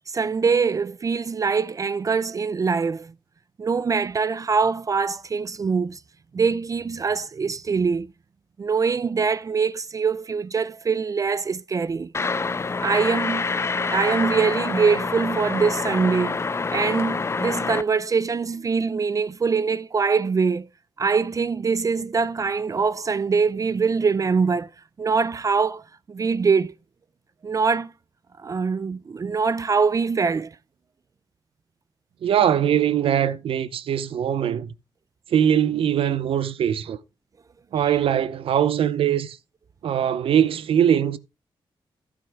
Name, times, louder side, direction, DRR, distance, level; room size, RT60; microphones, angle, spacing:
voice 1, 0.0-3.1 3.6-6.0 6.3-8.1 8.6-12.1 12.8-13.5 13.7-16.4 16.7-20.7 21.0-24.7 25.0-25.8 26.1-26.7 27.4-27.9 28.4-30.6, right 5 dB, 40° right, 0.4 m, -23 dB
sound 1, 12.1-17.8, left 4 dB, 30° left, 0.5 m, -26 dB
voice 2, 32.2-34.7 35.3-37.0 37.7-39.4 39.8-41.2, right 9 dB, 85° right, 0.8 m, -21 dB
15.0 x 6.3 x 3.5 m
cardioid pair, 100°, 9 cm